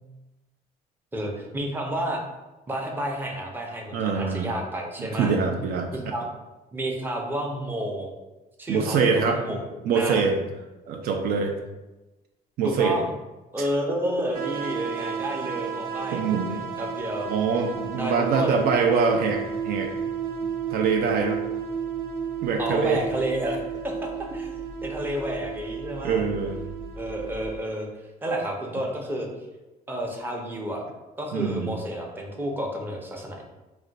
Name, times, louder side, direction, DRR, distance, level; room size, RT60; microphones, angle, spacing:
voice 1, 1.1-2.2 2.7-5.3 5.9-6.3 6.7-8.1 8.6-9.6 9.9-10.2 12.6-13.1 13.5-16.2 16.5-17.3 18.0-18.6 22.6-23.6 23.8-26.3 27.0-27.9 28.2-29.3 29.9-30.8 31.2-33.4, right 1 dB, 10° right, 0 dB, 0.5 m, -30 dB
voice 2, 3.9-4.5 5.0-6.1 8.7-9.6 9.8-10.4 10.9-11.5 12.6-13.0 13.6-13.7 16.1-16.5 17.3-19.9 20.7-21.4 22.4-23.0 26.0-26.6 31.3-31.7, right 5 dB, 65° right, 3 dB, 0.4 m, -24 dB
sound 1, 14.3-27.6, right 7 dB, 85° right, 0.9 m, -33 dB
2.4 x 2.2 x 3.9 m, 1.1 s
cardioid pair, 110°, 17 cm